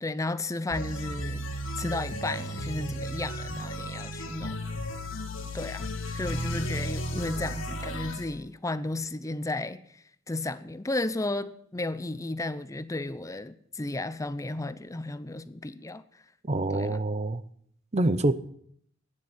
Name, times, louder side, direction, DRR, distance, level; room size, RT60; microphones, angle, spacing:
voice 1, 0.0-4.6 5.5-16.0 16.7-17.0, left 2 dB, 15° left, 0.6 m, -34 dB
sound 1, 0.7-8.2, equal, 85° left, 2.3 m, -34 dB
voice 2, 16.4-17.4 17.9-18.4, right 2 dB, 35° right, 0.7 m, -26 dB
13.0 x 9.8 x 9.5 m
head